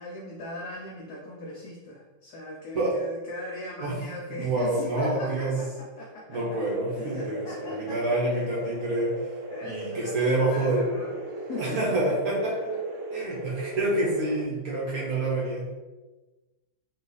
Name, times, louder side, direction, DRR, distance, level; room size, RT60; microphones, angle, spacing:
voice 1, 0.0-8.5 9.5-12.2 12.9-13.0 13.5-13.8, left 1 dB, 85° left, -2 dB, 0.8 m, -39 dB
voice 2, 4.3-5.6 6.3-9.1 9.6-10.8 11.6-12.7 13.1-15.8, right 2 dB, 60° right, -5 dB, 1.0 m, -27 dB
sound 1, 6.3-14.4, right 2 dB, 85° right, 1.7 m, -37 dB
4.0 x 2.4 x 3.8 m, 1.2 s
omnidirectional pair, 2.3 m